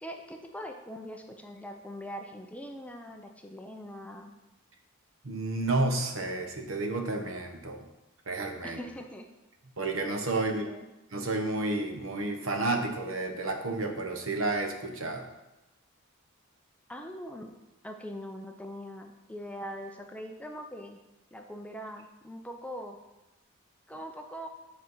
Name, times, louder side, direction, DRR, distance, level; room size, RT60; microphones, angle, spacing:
voice 1, 0.0-4.3 8.6-9.3 10.3-10.8 16.9-17.5 17.8-21.0 21.3-23.0 23.9-24.5, equal, 5° left, 4 dB, 0.5 m, -42 dB
voice 2, 5.2-7.9 8.3-8.8 9.8-10.6 11.1-15.3, right 2 dB, 70° right, 4 dB, 1.0 m, -31 dB
7.8 x 4.4 x 5.5 m, 1.0 s
head